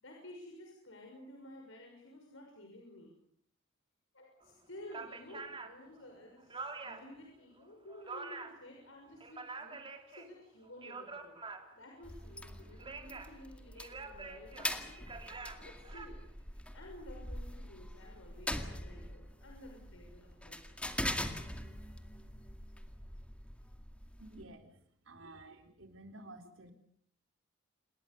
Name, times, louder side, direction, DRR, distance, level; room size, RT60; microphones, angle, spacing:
voice 1, 0.0-3.1 4.1-11.4 11.7-20.8, left 1 dB, 75° left, 1 dB, 6.3 m, -53 dB
sound 1, 4.4-4.5 4.9-7.2 7.6-8.7 9.0-10.3 10.6-11.9 12.6-13.4 13.8-16.1, right 4 dB, 25° right, 2.8 m, -46 dB
sound 2, 12.0-24.4, left 1 dB, 5° left, 2.1 m, -43 dB
voice 2, 24.2-24.7 25.1-26.7, right 1 dB, 80° right, 5 dB, 3.9 m, -52 dB
28.0 x 21.0 x 7.0 m, 0.65 s
head